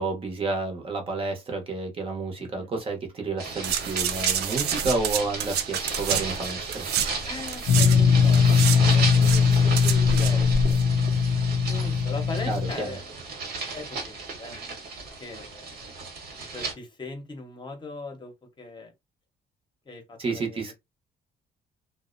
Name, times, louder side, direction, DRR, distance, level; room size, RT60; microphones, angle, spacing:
voice 1, 0.0-6.9 12.4-13.0 20.2-20.7, right 3 dB, 35° right, 0.8 m, -30 dB
voice 2, 2.4-2.7 7.2-8.5 8.8-10.8 11.7-13.2 13.7-14.6 15.2-15.9 16.5-18.9 19.9-20.7, left 3 dB, 30° left, 0.8 m, -40 dB
sound 1, 3.4-16.7, right 4 dB, 65° right, 1.1 m, -35 dB
sound 2, 3.6-8.0 8.2-10.8 11.1-11.2, right 7 dB, 90° right, 0.4 m, -29 dB
sound 3, 7.7-12.7, left 6 dB, 70° left, 0.4 m, -20 dB
2.5 x 2.1 x 2.4 m
cardioid pair, 130°, 16 cm